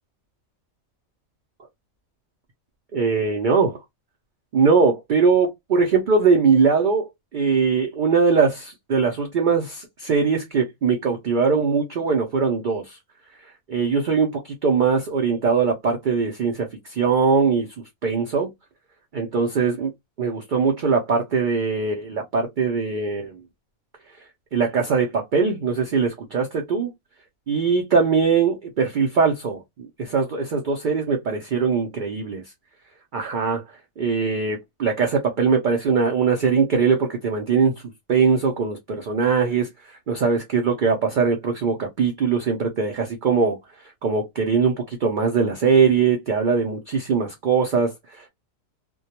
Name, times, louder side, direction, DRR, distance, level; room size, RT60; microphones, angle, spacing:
voice 1, 2.9-3.8 4.5-13.0 13.7-17.7 18.0-18.5 19.1-19.9 20.2-23.4 24.5-26.9 27.5-32.4 33.1-33.6 34.0-37.7 38.1-48.3, right 5 dB, 90° right, 0.4 m, -21 dB
2.2 x 2.2 x 2.8 m
omnidirectional pair, 1.4 m